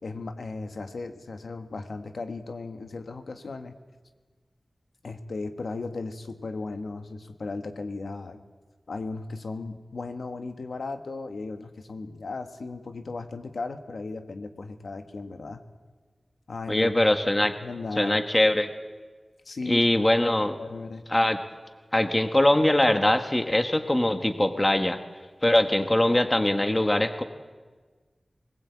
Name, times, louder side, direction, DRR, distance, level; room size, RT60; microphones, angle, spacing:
voice 1, 0.0-3.7 5.0-8.4 8.9-15.6 16.5-16.9 17.4-18.2 19.4-20.1 20.6-21.1, left 3 dB, 85° left, 6 dB, 1.5 m, -36 dB
voice 2, 16.7-17.5 18.0-18.7 19.7-20.6 21.1-21.4 21.9-25.0 25.4-27.2, left 1 dB, 20° left, 7 dB, 1.5 m, -22 dB
20.5 x 19.5 x 8.4 m, 1.4 s
wide cardioid pair, 95°, 0 cm